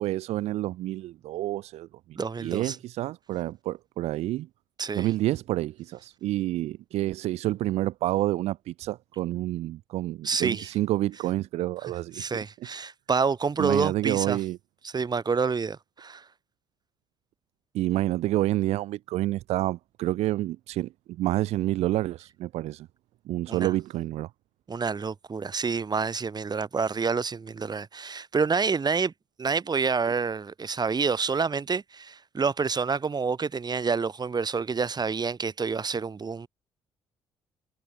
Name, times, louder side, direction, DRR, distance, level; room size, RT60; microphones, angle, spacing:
voice 1, 0.0-1.9 2.4-4.5 4.9-12.2 13.6-14.6 17.7-22.9 23.3-24.3, right 15 dB, 60° right, 1.3 m, -28 dB
voice 2, 2.2-2.8 4.8-5.1 10.2-10.7 11.8-14.4 14.8-16.2 23.5-23.7 24.7-29.1 29.4-36.5, right 5 dB, 35° right, 7.0 m, -28 dB
figure-of-eight pair, 45°, 12 cm